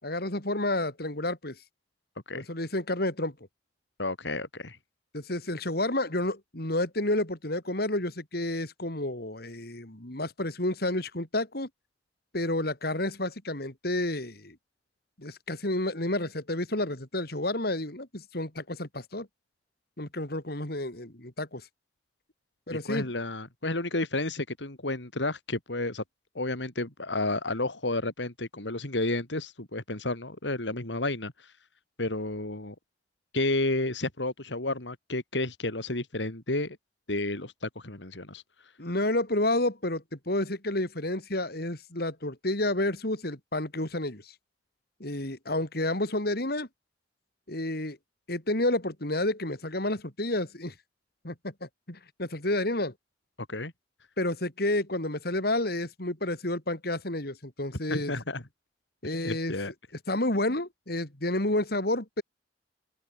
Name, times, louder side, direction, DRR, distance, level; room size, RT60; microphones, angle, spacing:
voice 1, 0.0-1.6 2.3-3.3 5.1-11.7 12.3-14.6 15.2-19.3 20.0-21.6 22.7-23.1 38.8-44.3 45.0-46.7 47.5-48.0 48.3-50.7 51.2-52.9 54.2-58.1 59.0-59.5 60.1-62.2, left 1 dB, 60° left, 4.3 m, -30 dB
voice 2, 4.0-4.8 22.7-26.0 26.4-31.5 32.0-32.8 33.3-36.8 37.1-38.4 53.5-53.7 57.9-58.4 59.2-59.7, left 2 dB, 85° left, 3.5 m, -31 dB
open air
head